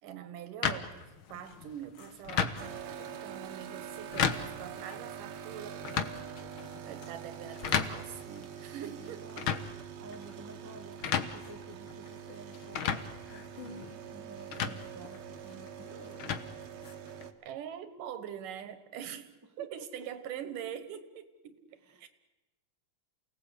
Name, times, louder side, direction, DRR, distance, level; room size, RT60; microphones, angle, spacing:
voice 1, 0.0-6.5 6.8-9.3 17.4-19.3 19.6-22.1, right 9 dB, 90° right, 11 dB, 3.0 m, -44 dB
sound 1, 0.6-17.3, left 7 dB, 55° left, 1.5 m, -37 dB
sound 2, 2.6-17.3, right 8 dB, 65° right, 2.2 m, -45 dB
voice 2, 8.8-9.5 9.8-11.0 11.3-16.1 19.6-19.8 21.8-22.1, right 2 dB, 20° right, 5 dB, 0.4 m, -52 dB
28.5 x 18.0 x 8.3 m, 1.1 s
omnidirectional pair, 3.7 m